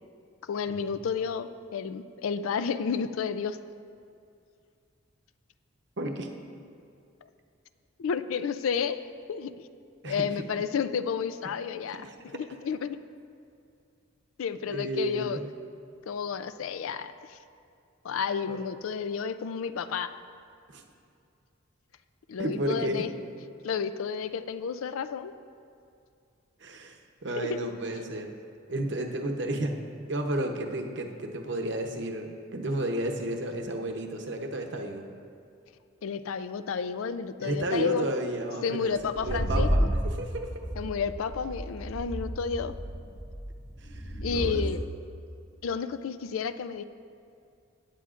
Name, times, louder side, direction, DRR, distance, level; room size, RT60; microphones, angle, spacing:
voice 1, 0.4-3.6 8.0-9.0 9.3-9.7 10.0-12.1 12.3-13.0 14.4-15.4 16.1-17.4 18.0-20.1 22.3-23.1 23.6-25.3 27.4-27.6 36.0-38.1 38.6-39.9 40.8-42.7 44.2-44.8 45.6-46.8, left 6 dB, 80° left, 12 dB, 0.4 m, -31 dB
voice 2, 6.0-6.3 10.0-10.2 11.9-12.2 14.6-15.4 18.5-18.6 20.7-20.8 22.4-23.1 26.6-28.3 28.7-29.8 30.1-35.1 37.4-40.7 43.8-44.0 44.3-44.6, right 1 dB, 55° right, 3 dB, 0.8 m, -32 dB
sound 1, 39.0-44.7, equal, 55° left, 1.6 m, -31 dB
17.5 x 8.4 x 2.5 m, 2.5 s
head